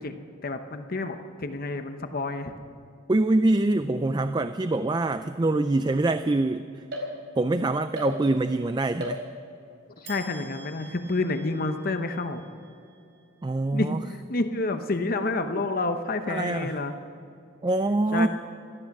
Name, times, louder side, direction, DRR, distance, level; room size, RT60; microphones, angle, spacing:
voice 1, 0.0-2.6 4.2-4.3 10.0-12.4 13.7-16.9 18.1-18.3, left 2 dB, 45° left, 7 dB, 0.8 m, -29 dB
voice 2, 3.1-6.8 7.4-9.2 13.4-14.0 16.3-16.8 17.6-18.3, right 2 dB, 20° right, 10 dB, 0.3 m, -24 dB
Ikkyu san, 6.9-7.6 7.9-8.6 9.0-9.7 10.0-13.5, left 1 dB, 55° right, 4.3 m, -40 dB
17.5 x 13.5 x 6.0 m, 2.6 s
head